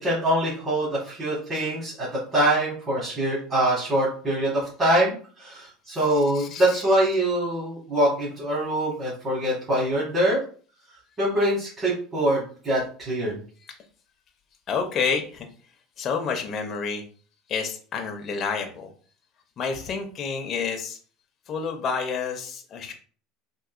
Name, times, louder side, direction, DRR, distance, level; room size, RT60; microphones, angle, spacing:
voice 1, 0.0-10.4 11.2-13.4, right 1 dB, 25° right, -8 dB, 1.6 m, -24 dB
voice 2, 6.1-6.8 14.7-15.5 16.0-17.0 17.5-18.9 19.6-21.0 21.5-22.9, left 5 dB, 40° left, 4 dB, 0.6 m, -29 dB
3.7 x 2.6 x 2.5 m, 0.42 s
supercardioid pair, 125°, 0 cm